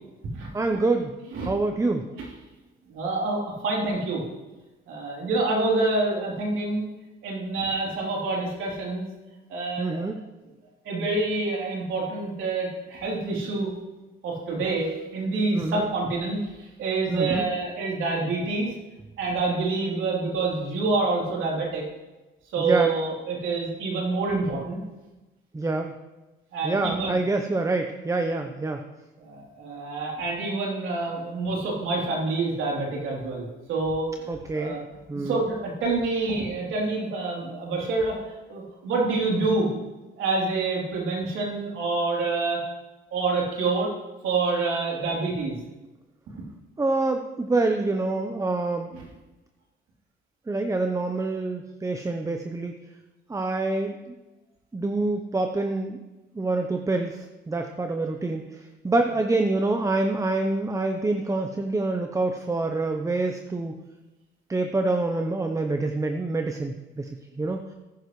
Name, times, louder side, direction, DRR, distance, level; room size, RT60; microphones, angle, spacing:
voice 1, 0.5-1.1 1.4-2.1 9.8-10.2 15.5-15.9 17.1-17.5 22.6-22.9 25.5-25.9 26.6-28.8 34.3-34.8 35.1-35.4 46.8-48.9 50.5-52.7 53.3-54.1 54.7-56.0 56.3-58.4 58.8-63.8 64.5-67.1 67.4-67.7, right 2 dB, 15° right, 5 dB, 0.8 m, -26 dB
voice 2, 2.9-4.2 4.9-6.8 7.2-9.1 9.5-10.0 10.8-13.7 14.2-18.7 19.2-21.8 22.5-24.8 26.5-27.2 29.2-34.1 34.5-34.8 35.1-38.2 38.5-39.7 40.2-42.6 43.1-43.9 44.2-45.6 48.9-49.1, right 3 dB, 85° right, -3 dB, 3.4 m, -27 dB
14.0 x 10.5 x 3.2 m, 1.1 s
cardioid pair, 90°, 20 cm